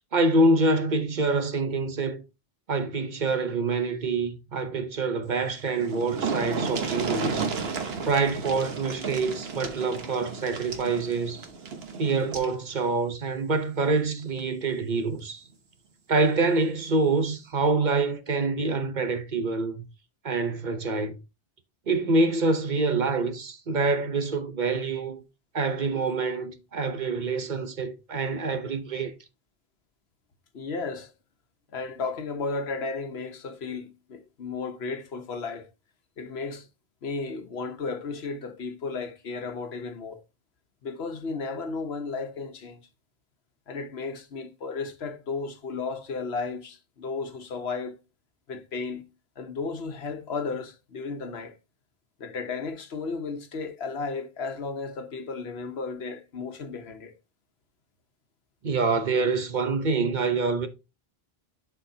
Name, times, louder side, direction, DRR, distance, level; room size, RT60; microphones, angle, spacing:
voice 1, 0.1-2.2 2.7-7.6 8.0-11.5 12.0-15.4 16.1-19.8 20.2-21.2 21.9-25.2 25.5-29.1 58.6-60.7, right 3 dB, 50° right, 0.9 m, -26 dB
sound 1, 5.4-5.5 5.7-12.5 13.8-14.0 14.4-14.5, right 5 dB, 75° right, 1.3 m, -33 dB
voice 2, 30.5-31.1 31.7-35.7 36.2-36.7 37.0-40.2 40.8-42.8 43.7-47.9 48.5-49.0 49.4-51.6 52.2-57.1, left 4 dB, 90° left, 1.2 m, -34 dB
11.5 x 4.6 x 2.7 m
omnidirectional pair, 1.0 m